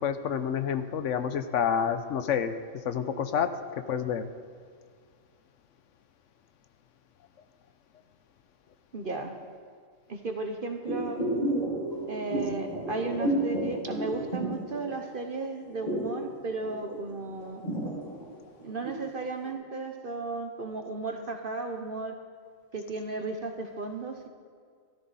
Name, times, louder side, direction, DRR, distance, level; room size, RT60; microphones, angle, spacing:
voice 1, 0.0-2.5 2.8-3.5 3.9-4.3, left 8 dB, 70° left, 10 dB, 1.0 m, -28 dB
voice 2, 8.9-9.3 10.1-11.2 12.1-17.6 18.6-22.1 22.7-24.3, right 3 dB, 45° right, 5 dB, 1.1 m, -35 dB
sound 1, 10.8-15.3 15.5-19.1 19.4-19.5, right 1 dB, 30° left, 4.6 m, -31 dB
14.5 x 13.0 x 4.1 m, 2.1 s
omnidirectional pair, 1.4 m